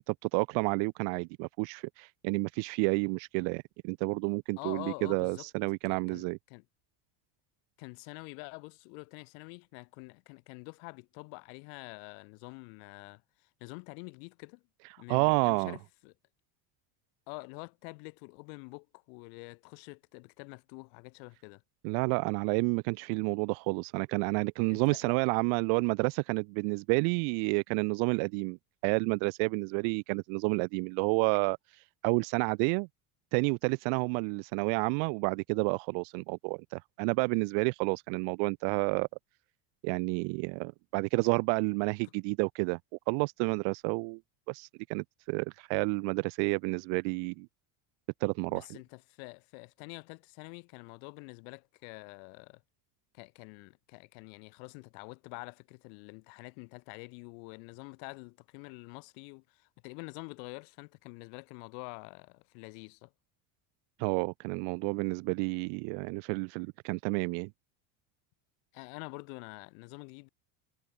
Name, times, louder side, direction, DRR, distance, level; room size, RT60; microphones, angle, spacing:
voice 1, 0.0-6.4 15.1-15.8 21.8-28.6 28.8-32.9 33.3-39.1 39.8-42.8 43.1-44.2 44.5-47.5 48.2-48.6 64.0-67.5, right 40 dB or more, 65° right, 0.6 m, -30 dB
voice 2, 4.6-5.5 5.8-6.6 7.8-14.6 15.0-16.1 17.3-21.6 24.7-25.1 48.5-52.6 53.1-63.1 68.7-70.3, left 40 dB or more, 90° left, 2.0 m, -47 dB
cardioid pair, 180°, 47 cm